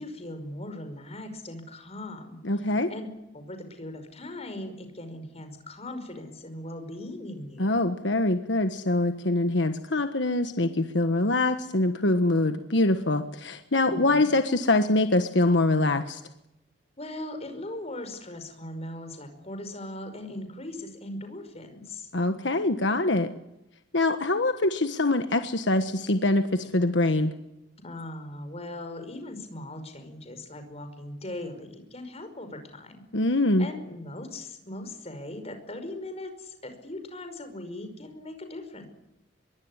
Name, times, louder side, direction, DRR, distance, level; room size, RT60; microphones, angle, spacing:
voice 1, 0.0-2.4 2.9-7.7 13.9-14.3 17.0-22.1 27.8-33.0 33.6-38.9, left 1 dB, 35° left, 7 dB, 5.3 m, -39 dB
voice 2, 2.4-2.9 7.6-16.2 22.1-23.3 23.9-27.3 33.1-33.7, left 2 dB, 70° left, 8 dB, 1.4 m, -24 dB
24.0 x 22.5 x 9.8 m, 0.88 s
head